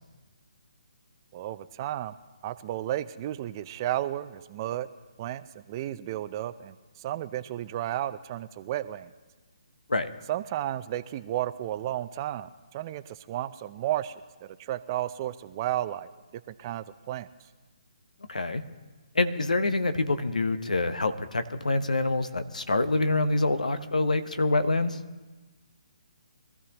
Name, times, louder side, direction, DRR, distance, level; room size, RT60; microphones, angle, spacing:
voice 1, 1.3-2.1 2.4-4.9 5.2-9.1 10.3-14.1 14.4-16.1 16.5-17.3, right 13 dB, 30° right, 13 dB, 0.5 m, -33 dB
voice 2, 18.3-18.6 19.1-25.0, left 2 dB, 85° left, 10 dB, 1.0 m, -26 dB
23.0 x 13.5 x 3.0 m, 1.3 s
figure-of-eight pair, 145°, 4 cm